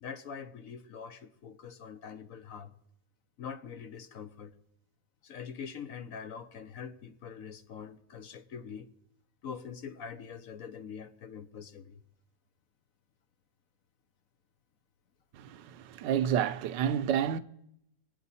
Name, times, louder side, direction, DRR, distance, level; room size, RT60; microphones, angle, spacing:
voice 1, 0.0-2.7 3.4-4.5 5.2-8.9 9.4-12.0, left 7 dB, 60° left, 1.1 m, -44 dB
voice 2, 15.3-17.4, right 9 dB, 90° right, 1.4 m, -30 dB
24.5 x 9.1 x 4.1 m
omnidirectional pair, 1.8 m